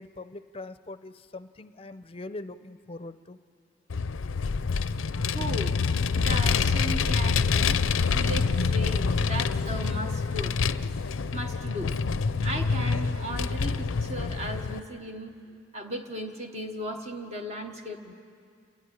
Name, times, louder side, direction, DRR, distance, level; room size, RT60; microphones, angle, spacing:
voice 1, 0.0-3.4, left 2 dB, 30° left, 13 dB, 0.6 m, -42 dB
Vehicle, 3.9-14.8, left 5 dB, 85° left, 0.5 m, -26 dB
voice 2, 5.3-5.8 6.1-7.8 8.0-10.6 11.3-12.0 12.4-15.3 15.7-18.1, right 1 dB, 35° right, 3 dB, 1.2 m, -36 dB
28.5 x 11.5 x 9.9 m, 2.3 s
head